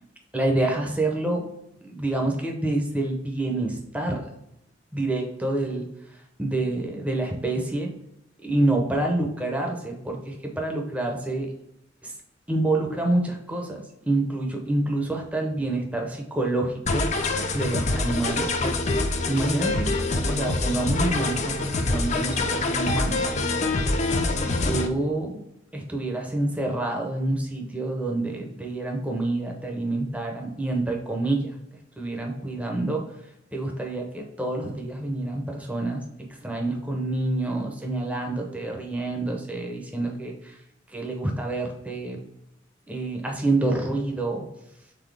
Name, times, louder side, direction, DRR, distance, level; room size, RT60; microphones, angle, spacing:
voice 1, 0.3-1.5 1.8-4.2 4.9-5.9 6.4-7.9 8.4-11.5 12.0-12.1 12.5-23.7 24.3-25.4 25.7-31.5 32.0-33.0 33.5-36.0 36.4-40.5 40.9-42.2 42.9-44.5, right 2 dB, 10° right, 1 dB, 0.7 m, -27 dB
sound 1, 16.9-24.9, left 2 dB, 40° left, 0.5 m, -25 dB
4.1 x 3.7 x 3.3 m, 0.81 s
head